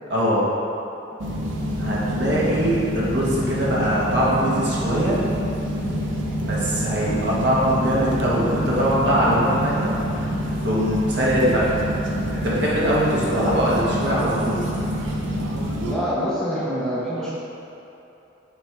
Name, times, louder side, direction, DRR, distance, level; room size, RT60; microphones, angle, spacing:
voice 1, 0.1-0.4 1.8-5.2 6.4-10.0 10.6-11.8 12.3-14.7, equal, 60° right, -7 dB, 1.3 m, -22 dB
sound 1, 1.2-16.0, equal, 80° right, 0.7 m, -26 dB
voice 2, 1.3-1.7 15.8-17.3, equal, 5° left, -10 dB, 1.0 m, -27 dB
6.9 x 4.4 x 3.4 m, 2.9 s
head